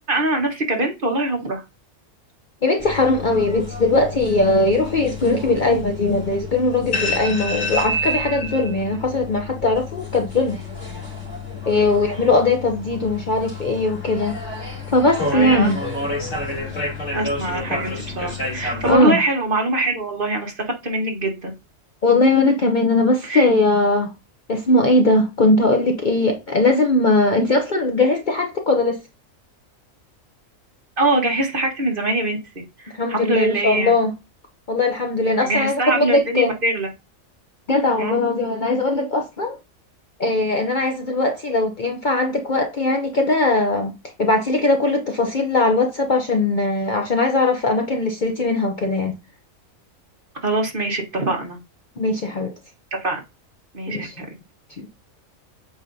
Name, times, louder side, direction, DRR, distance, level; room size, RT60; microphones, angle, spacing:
voice 1, 0.0-1.6 11.7-12.0 15.3-15.7 17.1-21.5 23.3-23.5 31.0-32.4 32.8-33.9 35.4-36.9 38.0-38.2 50.4-51.6 53.0-53.2 53.7-54.3, right 2 dB, 40° right, 1.6 m, -23 dB
voice 2, 2.6-10.6 11.7-14.4 14.9-15.8 18.9-19.2 22.0-24.1 24.5-29.0 32.9-34.1 34.7-36.5 37.7-39.6 40.2-49.1 52.0-52.5 53.9-54.2, left 2 dB, 45° left, 0.8 m, -19 dB
sound 1, 2.8-19.0, left 2 dB, 60° left, 3.6 m, -29 dB
8.0 x 4.9 x 2.7 m
omnidirectional pair, 1.4 m